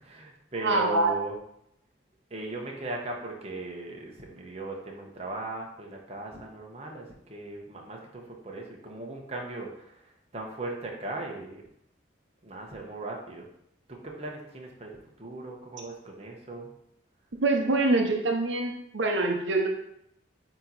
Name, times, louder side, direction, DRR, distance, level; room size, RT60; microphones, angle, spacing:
voice 1, 0.0-1.3 2.3-11.6 12.4-13.5 13.9-16.7, right 2 dB, 30° right, 0 dB, 1.0 m, -38 dB
voice 2, 0.6-1.1 17.4-19.7, right 2 dB, 75° right, 2 dB, 0.8 m, -25 dB
8.9 x 3.0 x 4.0 m, 0.76 s
head